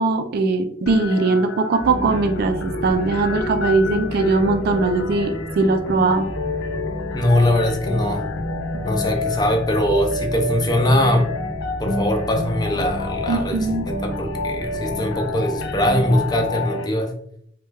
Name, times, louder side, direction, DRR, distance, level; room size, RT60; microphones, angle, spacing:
voice 1, 0.0-6.3 13.3-13.9, right 3 dB, 55° right, 7 dB, 0.3 m, -20 dB
sound 1, 0.9-16.9, left 2 dB, 80° left, 0.4 m, -29 dB
sound 2, 1.8-16.5, equal, 30° right, 0.8 m, -33 dB
voice 2, 7.1-8.2 8.8-11.3 11.8-17.1, left 1 dB, 20° left, 3 dB, 0.5 m, -21 dB
3.1 x 2.2 x 3.2 m, 0.68 s
head